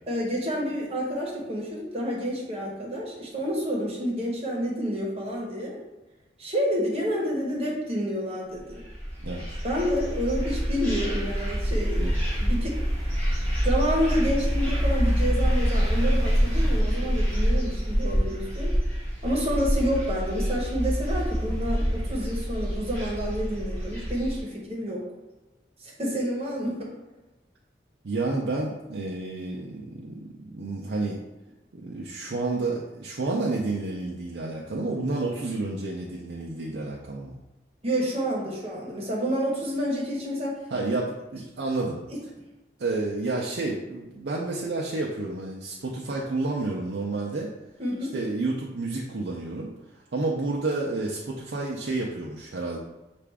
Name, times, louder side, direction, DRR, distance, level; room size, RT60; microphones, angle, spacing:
voice 1, 0.1-5.8 6.4-8.8 9.6-12.1 12.4-12.8 13.6-18.8 19.2-25.0 25.8-26.9 37.8-40.6 42.1-42.2 47.8-48.2, equal, 35° right, -3 dB, 1.1 m, -29 dB
sound 1, 8.7-24.4, equal, 10° left, 1.4 m, -26 dB
voice 2, 28.0-31.2 31.7-37.3 40.7-42.0 42.8-47.5 48.1-49.7 50.1-52.8, right 2 dB, 80° right, -3 dB, 0.5 m, -30 dB
5.7 x 2.5 x 3.4 m, 1.1 s
head